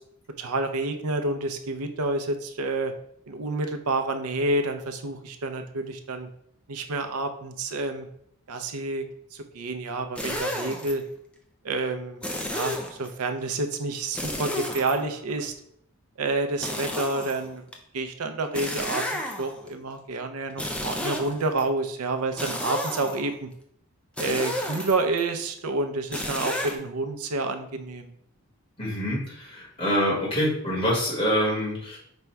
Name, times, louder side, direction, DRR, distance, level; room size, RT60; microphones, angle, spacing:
voice 1, 0.4-2.9 3.3-6.3 6.7-8.1 8.5-9.0 9.3-11.0 11.6-12.2 12.5-15.5 16.2-17.6 17.9-23.5 24.2-28.1, right 2 dB, 85° right, 6 dB, 0.6 m, -29 dB
sound 1, 10.2-10.9 12.2-13.1 14.1-15.4 16.6-17.8 18.5-19.7 20.5-21.6 22.4-23.3 24.2-25.2 26.1-26.8, left 1 dB, 5° left, 0.4 m, -32 dB
voice 2, 28.8-32.0, equal, 25° left, -5 dB, 1.5 m, -26 dB
5.1 x 2.3 x 4.4 m, 0.70 s
head